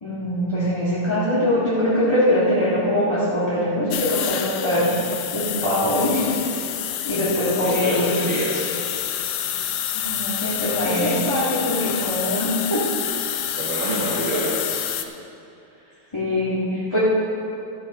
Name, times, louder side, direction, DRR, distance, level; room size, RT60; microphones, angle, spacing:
voice 1, 0.0-4.9 5.3-6.4 7.0-8.1 9.9-12.9 16.1-17.0, left 1 dB, 15° left, -10 dB, 1.6 m, -22 dB
sound 1, 3.9-15.0, left 10 dB, 75° left, 1.4 m, -28 dB
voice 2, 7.6-8.7 13.5-14.9 15.8-15.9, right 1 dB, 65° right, -9 dB, 2.5 m, -27 dB
13.0 x 7.3 x 5.5 m, 2.6 s
omnidirectional pair, 2.4 m